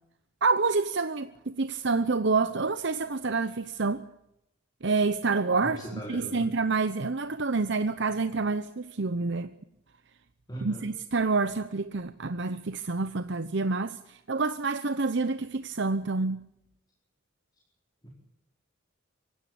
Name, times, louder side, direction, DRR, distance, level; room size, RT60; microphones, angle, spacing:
voice 1, 0.4-4.0 4.8-5.8 6.1-9.5 10.6-16.4, right 4 dB, 60° right, 0.8 m, -28 dB
voice 2, 5.6-6.5 10.5-10.9 18.0-18.1, right 1 dB, 20° left, 4.6 m, -38 dB
24.5 x 16.0 x 8.7 m
head